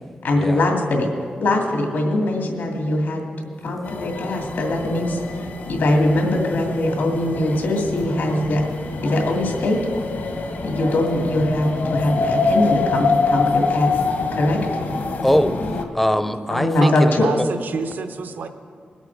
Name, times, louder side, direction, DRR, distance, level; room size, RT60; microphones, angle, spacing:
voice 1, 0.2-1.1 1.4-3.2 3.6-8.6 9.0-9.8 10.6-14.0 14.3-14.7 16.5-17.3, left 1 dB, 90° left, 1 dB, 2.3 m, -21 dB
sound 1, 3.9-15.8, left 4 dB, 75° left, 1.2 m, -25 dB
voice 2, 15.2-17.5, equal, 5° left, 10 dB, 0.5 m, -22 dB
voice 3, 16.8-18.5, right 5 dB, 70° right, 9 dB, 0.7 m, -29 dB
21.0 x 8.4 x 4.6 m, 2.2 s
wide cardioid pair, 180°, 3 cm